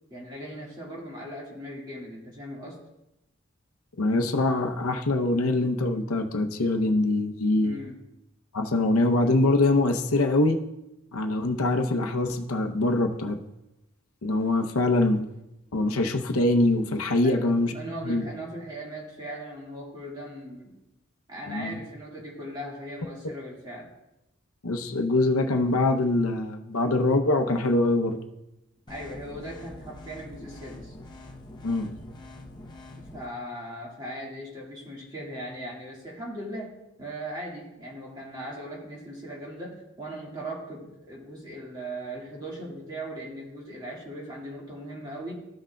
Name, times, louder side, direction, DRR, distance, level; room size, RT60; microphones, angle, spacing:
voice 1, 0.1-2.8 7.6-8.0 17.2-20.8 21.3-23.9 28.9-30.9 33.0-36.7 37.0-45.3, right 1 dB, 20° right, -4 dB, 1.8 m, -39 dB
voice 2, 4.0-7.9 8.5-10.6 11.1-13.4 14.2-15.2 15.7-17.7 18.0-18.2 21.5-21.8 24.6-28.2 31.6-31.9, left 2 dB, 85° left, 5 dB, 0.7 m, -24 dB
sound 1, 28.9-33.3, left 1 dB, 20° left, 0.7 m, -45 dB
14.0 x 6.1 x 2.3 m, 0.90 s
head